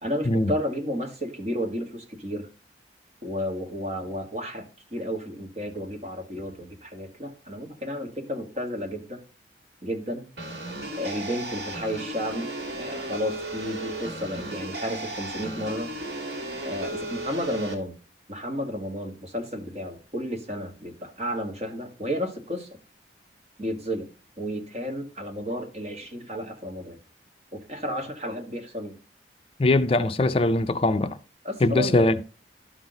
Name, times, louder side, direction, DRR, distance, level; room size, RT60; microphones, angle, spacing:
voice 1, 0.0-2.5 3.2-9.2 9.8-10.3 11.0-12.5 12.8-15.9 16.6-18.0 18.3-22.8 23.6-24.1 24.4-27.0 27.5-29.0 31.4-32.1, equal, 35° right, 1.8 m, -32 dB
sound 1, 10.4-17.7, right 2 dB, 70° right, 2.7 m, -35 dB
voice 2, 29.6-31.2 31.6-32.2, left 2 dB, 30° left, 0.5 m, -21 dB
12.0 x 6.1 x 3.9 m
head